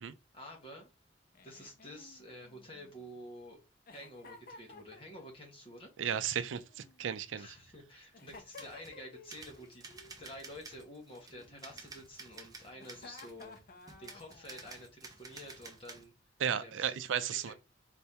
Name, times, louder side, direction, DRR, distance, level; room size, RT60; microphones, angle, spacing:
voice 1, 0.3-0.9 1.4-3.6 3.9-5.9 7.4-9.8 10.2-13.6 14.0-16.1 16.6-17.0 17.4-17.5, equal, 30° left, 1.5 m, -50 dB
Giggle, 1.3-3.2 3.9-5.4 6.5-7.5 8.1-9.3 9.6-10.1 11.3-12.1 12.7-14.8, left 3 dB, 50° left, 0.7 m, -55 dB
voice 2, 6.0-7.5 16.4-17.5, right 8 dB, 90° right, 0.4 m, -34 dB
sound 1, 8.2-9.0 9.3-16.1, right 3 dB, 20° right, 0.6 m, -52 dB
4.3 x 3.4 x 2.8 m
head